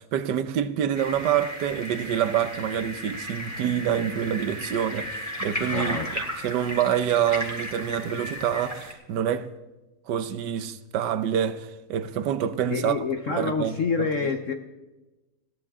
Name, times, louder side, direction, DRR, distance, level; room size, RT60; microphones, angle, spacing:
voice 1, 0.0-9.5 10.1-13.0 13.3-14.1, right 9 dB, 70° right, 1.4 m, -27 dB
sound 1, 0.9-8.9, equal, 10° left, 2.9 m, -35 dB
voice 2, 5.7-6.1 12.7-14.5, left 4 dB, 50° left, 1.1 m, -27 dB
21.0 x 15.0 x 3.7 m
omnidirectional pair, 2.0 m